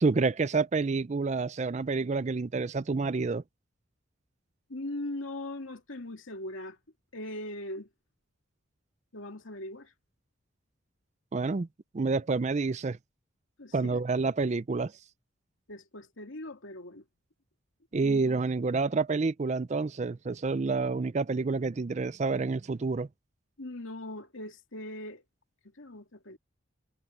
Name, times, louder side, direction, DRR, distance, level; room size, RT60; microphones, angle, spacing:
voice 1, 0.0-3.4 11.3-11.7 11.9-13.0 13.7-14.9 17.9-23.1, right 4 dB, 35° right, 0.4 m, -28 dB
voice 2, 4.7-6.8 7.1-7.9 9.1-9.9 13.6-14.0 15.7-17.0 17.9-18.2 23.6-25.2 25.8-26.4, left 1 dB, 80° left, 2.4 m, -40 dB
head